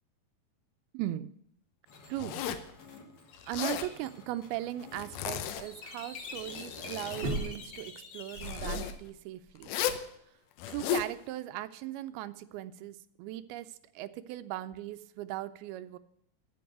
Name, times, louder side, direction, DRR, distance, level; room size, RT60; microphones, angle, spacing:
voice 1, 0.9-1.3 2.1-2.4 3.5-9.7 10.7-16.0, right 14 dB, 85° right, 13 dB, 2.5 m, -38 dB
sound 1, 1.9-8.9, left 4 dB, 50° left, 1.9 m, -48 dB
Zipper (clothing), 2.2-2.7 3.4-3.9 4.9-5.8 6.3-7.3 8.3-8.9 9.6-10.1 10.6-11.1, left 10 dB, 75° left, 2.0 m, -35 dB
sound 2, 7.2-7.9 8.3-9.1 9.5-9.6, right 2 dB, 50° right, 1.3 m, -36 dB
14.0 x 5.4 x 7.9 m, 0.72 s
omnidirectional pair, 4.4 m